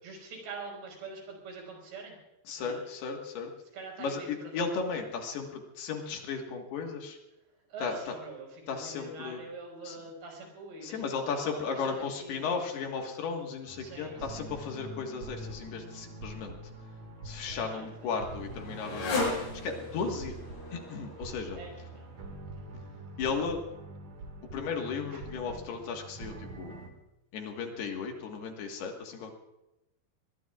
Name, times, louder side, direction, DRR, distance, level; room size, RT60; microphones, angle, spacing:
voice 1, 0.0-2.2 2.6-2.8 3.7-4.7 7.7-12.6 13.8-14.5 17.5-18.1 21.5-22.1 25.1-25.2, right 3 dB, 65° right, 1 dB, 6.9 m, -45 dB
voice 2, 2.5-3.5 4.0-7.2 7.8-8.0 8.7-9.4 9.8-10.0 10.8-16.6 17.2-20.4 20.7-21.6 23.2-23.6 24.5-26.7 27.3-29.3, left 5 dB, 70° left, 3 dB, 3.5 m, -35 dB
sound 1, 13.7-26.9, right 2 dB, 50° right, 2.7 m, -45 dB
Motorcycle, 17.0-22.4, left 3 dB, 85° left, 7.8 m, -38 dB
23.0 x 21.5 x 2.4 m, 0.96 s
omnidirectional pair, 5.0 m